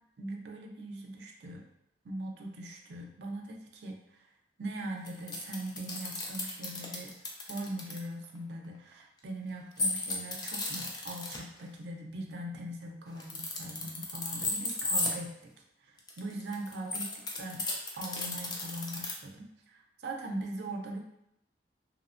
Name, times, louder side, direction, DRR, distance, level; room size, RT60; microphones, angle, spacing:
voice 1, 0.2-1.6 2.0-4.3 4.6-7.1 7.5-15.5 15.8-17.1 17.4-17.7 18.0-21.1, right 1 dB, 70° right, 1 dB, 0.4 m, -41 dB
sound 1, 5.1-8.0 9.8-11.4 13.1-15.1 16.0-19.1, left 2 dB, 25° left, 0.3 m, -34 dB
3.0 x 2.1 x 2.5 m, 0.77 s
head